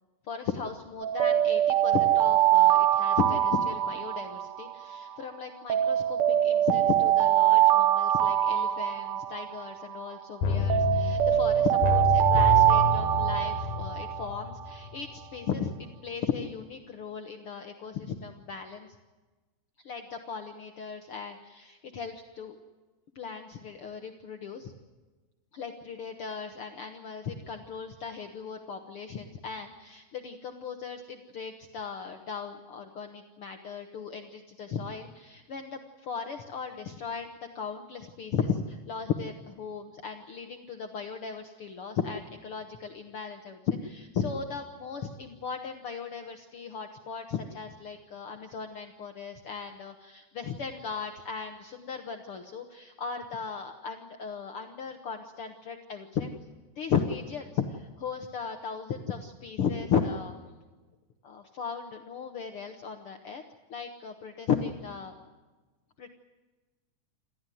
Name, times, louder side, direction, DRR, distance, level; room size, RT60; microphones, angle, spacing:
voice 1, 0.3-15.7 16.0-18.9 19.8-22.6 23.2-24.7 25.5-37.3 37.6-56.3 56.8-60.3 61.2-63.4 63.7-65.1 66.0-66.1, left 6 dB, 55° left, 5 dB, 1.9 m, -36 dB
Alarm, 1.0-5.2 5.7-10.2 10.7-14.5, right 12 dB, 70° right, 1.3 m, -24 dB
sound 1, 10.4-15.1 15.4-15.5, left 6 dB, 85° left, 3.0 m, -29 dB
28.5 x 14.0 x 9.3 m, 1.2 s
omnidirectional pair, 3.5 m